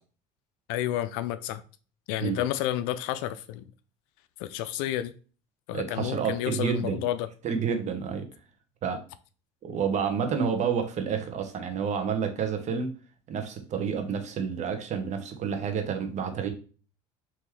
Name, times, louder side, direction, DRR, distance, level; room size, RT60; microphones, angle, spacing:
voice 1, 0.7-1.6 2.1-3.6 4.4-5.1 5.7-7.3, left 13 dB, 75° left, 0.4 m, -30 dB
voice 2, 5.7-7.0 7.4-8.3 8.8-9.0 9.6-12.9 13.3-16.5, right 6 dB, 45° right, 1.1 m, -29 dB
3.7 x 2.9 x 4.7 m
supercardioid pair, 95°, 17 cm